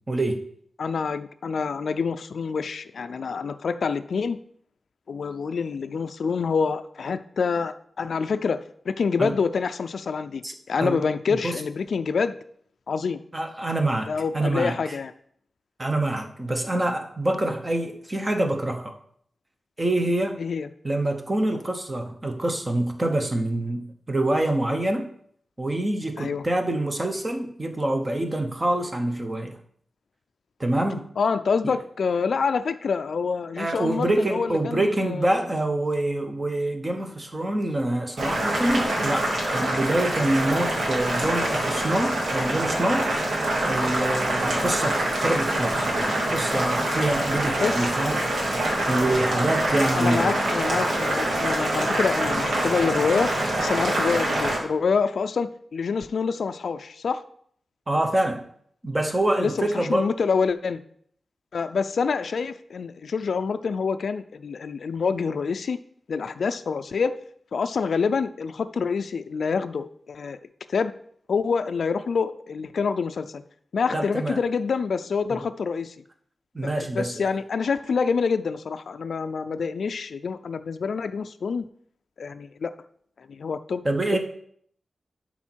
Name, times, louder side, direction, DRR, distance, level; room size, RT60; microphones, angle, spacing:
voice 1, 0.1-0.4 9.2-9.3 10.4-10.5 10.8-11.0 11.3-11.6 13.3-14.9 15.8-18.9 19.8-20.4 20.8-25.1 25.6-29.5 30.6-31.0 31.6-31.7 33.6-43.1 43.6-48.5 48.9-50.3 57.9-58.4 58.8-60.1 73.9-74.4 76.5-77.2 83.8-84.2, right 1 dB, 20° right, 5 dB, 0.9 m, -26 dB
voice 2, 0.8-4.4 5.1-12.4 12.9-13.2 14.1-15.1 20.4-20.7 26.2-26.4 31.2-35.5 47.6-47.9 49.9-57.2 59.4-60.8 61.5-65.8 66.1-67.2 67.5-70.4 70.7-70.9 71.3-73.4 73.7-75.9 76.6-81.6 82.2-82.7 83.2-83.8, left 5 dB, 70° left, 10 dB, 0.4 m, -27 dB
Boiling, 38.2-54.6, right 1 dB, 70° right, 2.3 m, -25 dB
11.5 x 4.2 x 4.5 m, 0.64 s
wide cardioid pair, 175°, 0 cm